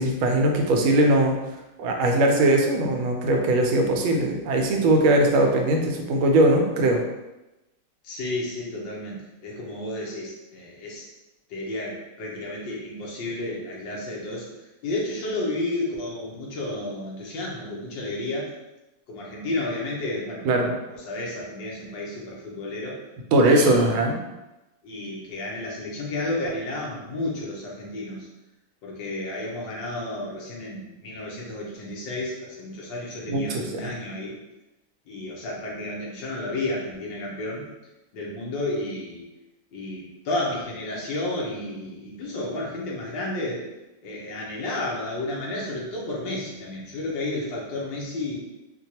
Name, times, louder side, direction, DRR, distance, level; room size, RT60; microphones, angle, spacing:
voice 1, 0.0-1.3 1.8-7.0 20.4-20.7 23.3-24.2 33.3-33.9, right 1 dB, 85° right, 2 dB, 1.4 m, -20 dB
voice 2, 8.0-11.1 11.5-14.5 14.8-18.5 19.1-20.5 20.9-23.0 23.4-24.1 24.8-28.3 28.8-34.3 35.1-37.7 38.1-39.2 39.7-43.7 44.0-48.4, left 2 dB, 70° left, -3 dB, 1.5 m, -32 dB
4.4 x 2.2 x 2.8 m, 1.0 s
omnidirectional pair, 2.2 m